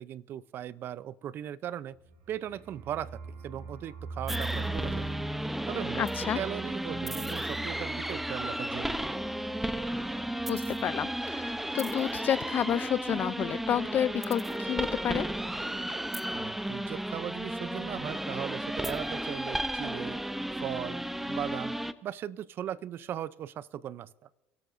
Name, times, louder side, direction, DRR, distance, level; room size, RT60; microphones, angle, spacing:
voice 1, 0.0-2.0 2.3-5.2 5.7-9.0 16.3-20.2 20.6-21.8 22.0-24.1, right 10 dB, 50° right, 19 dB, 0.5 m, -38 dB
sound 1, 2.0-11.7 11.9-12.1 12.3-12.8, right 3 dB, 80° right, 2.2 m, -43 dB
sound 2, 4.3-21.9, right 1 dB, 5° right, 0.7 m, -34 dB
voice 2, 6.0-6.4 10.5-15.3, left 9 dB, 45° left, 18 dB, 0.5 m, -30 dB
29.5 x 12.0 x 2.6 m, 0.98 s
supercardioid pair, 100°, 5 cm